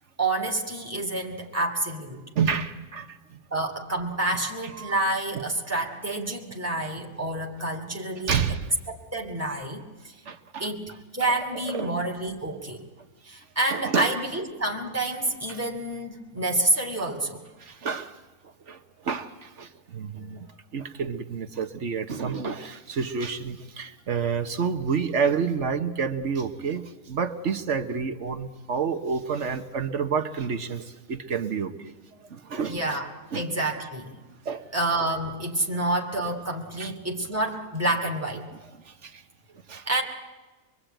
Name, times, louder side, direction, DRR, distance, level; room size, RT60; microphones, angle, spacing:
voice 1, 0.2-2.2 3.5-8.4 8.9-10.2 10.6-10.8 11.1-12.9 13.2-17.4 32.7-33.1 33.3-34.1 34.7-38.5 39.9-40.0, right 2 dB, 10° right, 2.7 m, -28 dB
voice 2, 2.3-3.4 4.8-5.0 5.3-5.4 8.3-8.7 10.3-10.7 11.5-11.9 13.7-14.1 15.5-15.6 17.0-17.1 17.6-18.2 18.7-20.5 20.7-31.9 32.3-32.8 33.3-33.4 34.4-34.7 36.8-36.9 38.9-39.2 39.7-39.9, right 6 dB, 55° right, 1.3 m, -29 dB
24.0 x 23.5 x 9.0 m
omnidirectional pair, 1.5 m